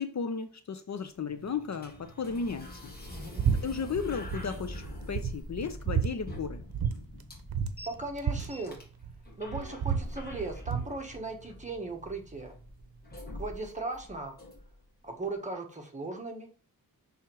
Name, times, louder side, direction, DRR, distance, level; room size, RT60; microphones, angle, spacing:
voice 1, 0.0-2.9 3.6-6.6, left 5 dB, 50° left, 0.6 m, -35 dB
sound 1, 1.0-14.9, left 1 dB, 25° left, 1.7 m, -45 dB
voice 2, 3.1-3.5 7.8-8.8 9.4-12.5 13.4-14.4 15.0-16.5, right 2 dB, 20° right, 1.3 m, -38 dB
sound 2, 3.4-3.6 3.9-4.4 4.8-4.9 5.1-6.1 6.7-6.9 7.2-7.3 7.5-9.2 9.5-10.9, right 7 dB, 70° right, 0.7 m, -30 dB
6.1 x 3.5 x 4.6 m
wide cardioid pair, 135°, 36 cm